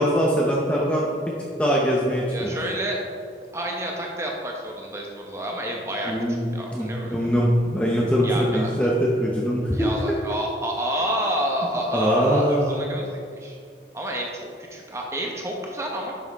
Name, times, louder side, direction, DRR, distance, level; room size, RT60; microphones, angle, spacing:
voice 1, 0.0-1.3 1.6-2.6 6.1-9.9 11.9-12.8, equal, 5° left, -3 dB, 0.7 m, -22 dB
voice 2, 2.3-3.0 3.5-6.1 6.5-7.3 8.2-8.7 9.7-13.6 13.9-16.1, right 1 dB, 15° right, -1 dB, 1.1 m, -29 dB
11.0 x 6.2 x 3.6 m, 2.2 s
head